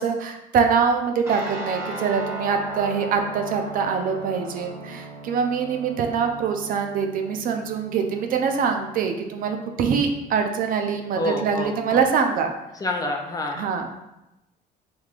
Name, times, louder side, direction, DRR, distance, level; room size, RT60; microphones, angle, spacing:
voice 1, 0.0-12.5 13.5-13.9, right 6 dB, 55° right, 5 dB, 0.4 m, -24 dB
sound 1, 1.2-11.6, right 2 dB, 15° right, 1.3 m, -38 dB
voice 2, 11.2-12.0 12.8-13.7, left 1 dB, 20° left, 2 dB, 0.4 m, -28 dB
3.5 x 3.1 x 2.4 m, 0.94 s
cardioid pair, 110°, 17 cm